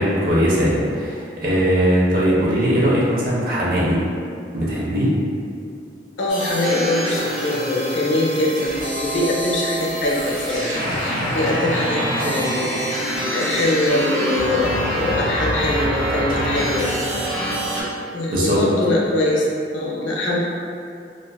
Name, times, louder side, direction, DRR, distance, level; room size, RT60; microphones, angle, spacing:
voice 1, 0.0-4.0 4.5-5.1 18.3-18.6, equal, 55° right, -6 dB, 0.6 m, -19 dB
voice 2, 6.2-10.7 11.3-12.7 13.3-16.9 18.1-19.5 19.7-20.4, left 1 dB, 80° left, -3 dB, 0.5 m, -22 dB
sound 1, 6.3-17.8, equal, 90° right, 1.3 m, -25 dB
2.4 x 2.3 x 2.2 m, 2.4 s
head